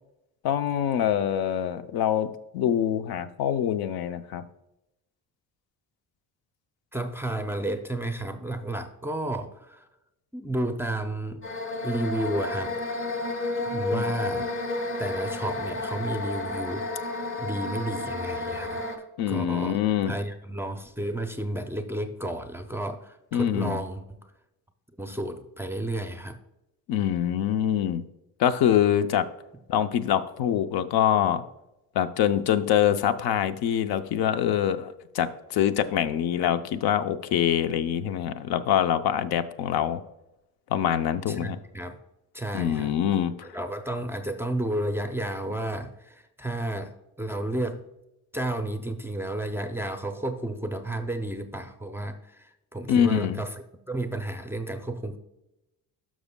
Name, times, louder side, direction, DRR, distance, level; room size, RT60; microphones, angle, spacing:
voice 1, 0.4-2.3 2.5-4.4 13.9-14.4 19.2-20.1 23.3-23.8 26.9-28.0 28.4-29.3 29.7-31.4 31.9-34.9 35.1-40.0 40.7-41.6 42.5-43.5 52.9-53.4, left 10 dB, 80° left, 11 dB, 0.7 m, -24 dB
voice 2, 6.9-9.9 10.3-11.4 11.8-12.8 13.5-14.5 15.0-17.0 17.4-18.8 19.3-19.8 20.0-24.3 25.0-26.4 41.3-42.0 42.3-42.9 43.5-47.9 48.3-53.5 53.9-55.2, right 1 dB, 5° right, 7 dB, 0.4 m, -32 dB
sound 1, 11.4-19.0, left 2 dB, 35° left, 1.0 m, -31 dB
12.0 x 6.2 x 2.2 m, 0.90 s
cardioid pair, 155°, 37 cm